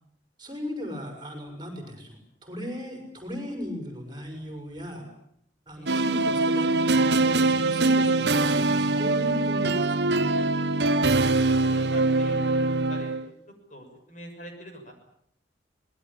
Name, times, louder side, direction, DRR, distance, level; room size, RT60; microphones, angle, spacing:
voice 1, 0.4-5.1 5.7-10.2, equal, 25° right, 4 dB, 6.1 m, -37 dB
voice 2, 5.7-6.1 11.2-13.2 13.7-14.9, equal, 45° left, 4 dB, 6.7 m, -45 dB
sound 1, 5.9-13.3, right 2 dB, 65° right, 1.1 m, -23 dB
25.5 x 20.5 x 8.7 m, 0.70 s
head